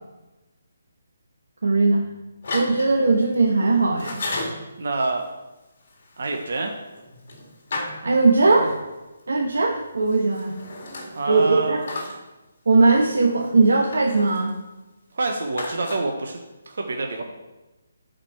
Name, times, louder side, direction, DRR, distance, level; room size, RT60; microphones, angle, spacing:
voice 1, 1.6-2.0 2.5-4.2 8.0-8.8 9.3-10.5 11.3-11.8 12.7-14.5, right 3 dB, 80° right, -1 dB, 1.3 m, -19 dB
sound 1, 2.4-3.3 4.0-4.7 5.9-8.6 10.1-11.4 11.8-12.2 13.4-14.5 15.6-16.0, left 2 dB, 40° left, 2.0 m, -34 dB
voice 2, 4.8-5.2 6.2-6.7 11.1-11.9 15.1-16.4 16.7-17.2, right 3 dB, 55° right, 3 dB, 0.9 m, -26 dB
12.0 x 5.0 x 4.5 m, 1.1 s
hypercardioid pair, 180°, 0 cm